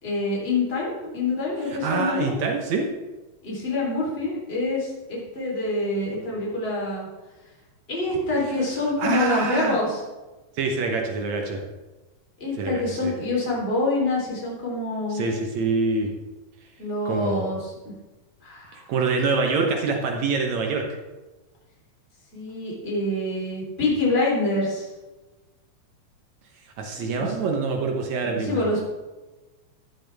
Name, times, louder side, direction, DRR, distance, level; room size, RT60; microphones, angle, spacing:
voice 1, 0.0-2.4 3.4-7.1 7.9-10.0 12.4-15.2 16.8-17.9 18.4-18.9 22.3-24.9 26.9-27.4 28.2-28.8, left 2 dB, 20° left, -5 dB, 3.7 m, -26 dB
voice 2, 1.7-2.9 9.0-9.8 10.6-11.6 12.6-13.1 15.1-16.1 17.1-17.5 18.7-20.9 26.8-28.6, right 4 dB, 70° right, 2 dB, 2.3 m, -25 dB
13.5 x 12.0 x 3.5 m, 1.2 s
omnidirectional pair, 3.4 m